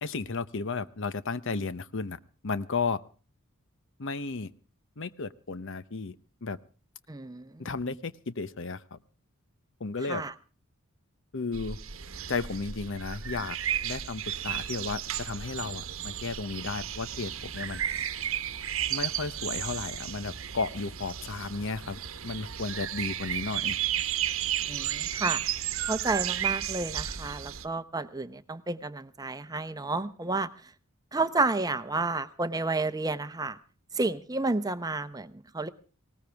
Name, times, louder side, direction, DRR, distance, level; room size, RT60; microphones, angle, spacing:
voice 1, 0.0-3.0 4.0-4.5 5.0-6.1 6.4-6.6 7.6-9.0 9.8-10.2 11.3-11.8 12.3-13.6 13.8-17.8 18.9-23.8, left 4 dB, 60° left, 16 dB, 0.8 m, -34 dB
voice 2, 7.1-7.7 10.1-10.3 24.7-25.4 25.9-30.5 31.1-33.6 33.9-35.7, right 3 dB, 15° right, 12 dB, 0.8 m, -31 dB
sound 1, 11.5-27.7, right 10 dB, 65° right, 1.1 m, -33 dB
19.5 x 19.0 x 3.4 m, 0.37 s
head